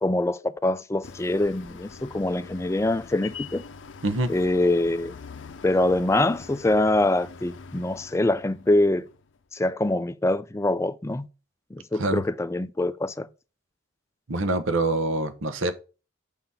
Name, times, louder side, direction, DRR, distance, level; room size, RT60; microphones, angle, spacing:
voice 1, 0.0-3.6 4.3-5.1 5.6-9.1 9.5-11.3 11.7-13.3, left 2 dB, 15° left, 0.3 m, -24 dB
sound 1, 1.0-9.4, left 5 dB, 70° left, 0.5 m, -44 dB
voice 2, 14.3-15.7, right 2 dB, 85° right, 1.0 m, -25 dB
6.9 x 3.9 x 5.6 m
head